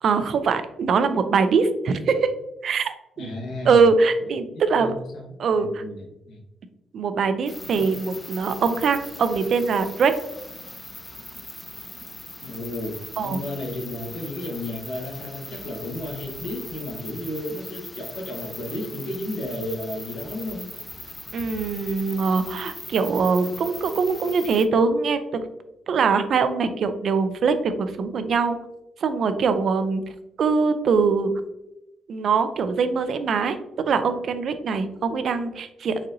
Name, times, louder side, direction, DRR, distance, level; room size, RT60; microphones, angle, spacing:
voice 1, 0.0-2.3 2.6-3.3 3.7-4.9 5.4-5.8 6.9-10.1 13.2-13.4 21.3-25.4 25.9-28.6 29.0-30.0 30.4-31.3 32.1-33.6 33.9-36.0, right 5 dB, 60° right, 10 dB, 0.3 m, -22 dB
voice 2, 3.2-3.8 4.5-6.4 7.7-7.9 12.4-12.9 13.2-20.7, left 1 dB, 75° left, -1 dB, 1.1 m, -33 dB
sound 1, 7.5-24.7, left 2 dB, 15° left, 0.4 m, -40 dB
4.1 x 2.5 x 2.6 m, 0.90 s
cardioid pair, 90°, 0 cm